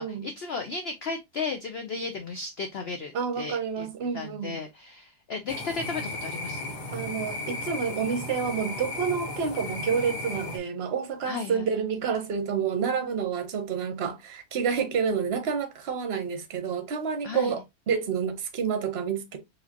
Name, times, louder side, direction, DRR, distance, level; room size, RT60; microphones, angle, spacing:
voice 1, 0.0-3.9 4.1-6.7 11.2-11.7 17.2-17.5, left 4 dB, 65° left, 0.6 m, -35 dB
voice 2, 3.1-4.6 6.9-19.4, right 6 dB, 50° right, 0.9 m, -29 dB
sound 1, 5.5-10.6, left 2 dB, 80° left, 1.6 m, -35 dB
4.7 x 3.2 x 2.8 m
omnidirectional pair, 1.7 m